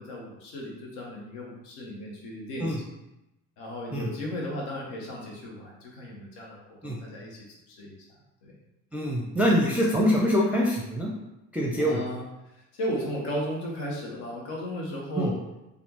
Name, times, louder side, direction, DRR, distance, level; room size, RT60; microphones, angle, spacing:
voice 1, 0.0-2.9 3.6-7.4 7.7-8.0 8.4-8.5 11.8-12.2 12.7-15.4, equal, 80° left, -2 dB, 0.9 m, -35 dB
voice 2, 8.9-11.1 11.5-12.0 15.2-15.3, equal, 5° right, -3 dB, 0.5 m, -24 dB
3.3 x 2.4 x 2.9 m, 0.93 s
hypercardioid pair, 60°, 40 cm